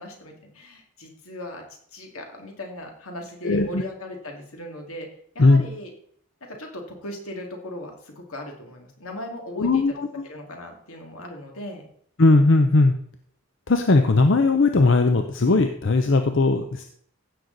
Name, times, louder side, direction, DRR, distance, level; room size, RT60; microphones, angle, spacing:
voice 1, 0.0-1.6 1.9-5.1 5.3-5.9 6.4-9.8 10.2-11.9, left 1 dB, 80° left, 2 dB, 2.4 m, -38 dB
voice 2, 3.4-3.8 5.4-5.6 9.6-10.1 12.2-12.9 13.7-16.8, left 3 dB, 55° left, 6 dB, 0.6 m, -18 dB
15.5 x 6.5 x 4.0 m, 0.63 s
head